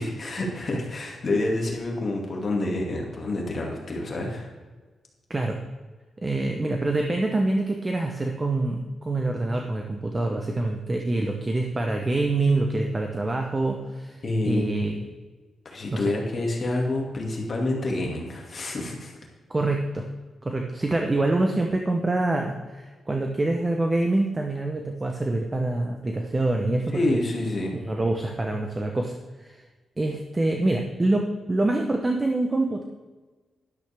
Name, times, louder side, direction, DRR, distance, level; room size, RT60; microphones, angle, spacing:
voice 1, 0.0-4.5 14.2-14.8 15.6-19.1 26.9-27.7, left 2 dB, 35° left, 0 dB, 2.2 m, -28 dB
voice 2, 6.2-15.0 15.9-16.1 19.5-20.1 20.4-27.2 27.7-29.6 30.0-32.8, right 2 dB, 15° right, 3 dB, 0.8 m, -26 dB
12.5 x 12.0 x 3.5 m, 1.3 s
wide cardioid pair, 170°, 0 cm